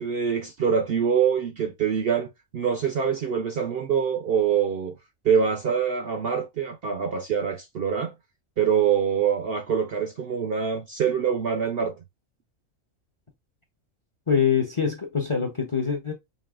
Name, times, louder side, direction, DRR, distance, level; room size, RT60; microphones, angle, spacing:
voice 1, 0.0-5.0 5.2-8.1 8.6-12.0, right 7 dB, 60° right, 0.6 m, -25 dB
voice 2, 14.3-16.1, left 6 dB, 30° left, 0.6 m, -24 dB
5.2 x 2.8 x 2.3 m
omnidirectional pair, 1.4 m